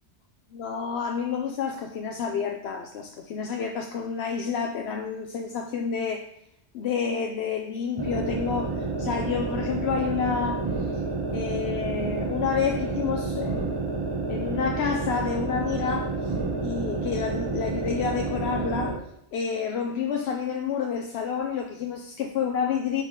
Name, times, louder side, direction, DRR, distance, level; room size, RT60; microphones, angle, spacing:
voice 1, 0.5-6.3 6.7-10.6 10.9-11.0 11.3-13.7 14.3-19.0 19.3-23.0, left 6 dB, 65° left, 3 dB, 0.8 m, -29 dB
sound 1, 8.0-19.0, right 3 dB, 25° right, 0.7 m, -29 dB
5.6 x 4.6 x 5.2 m, 0.79 s
omnidirectional pair, 1.2 m